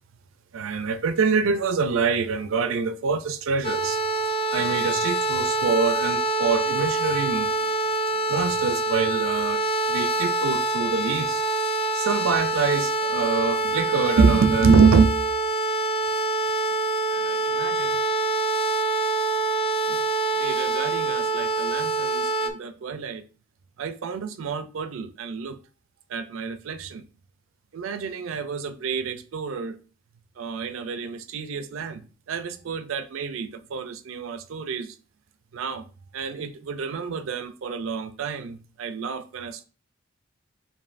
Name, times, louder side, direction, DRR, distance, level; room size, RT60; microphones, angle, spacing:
voice 1, 0.5-4.0 4.5-7.5 8.3-9.6 9.9-11.4 11.9-15.2 17.1-18.0 19.8-20.0 20.4-23.2 23.8-25.6 26.1-27.0 27.7-29.8 30.4-32.0 32.3-34.9 35.5-35.8 36.1-39.6, right 5 dB, 85° right, 0.4 m, -26 dB
sound 1, 3.6-22.5, right 2 dB, 25° left, 0.4 m, -25 dB
7.1 x 2.5 x 2.5 m
head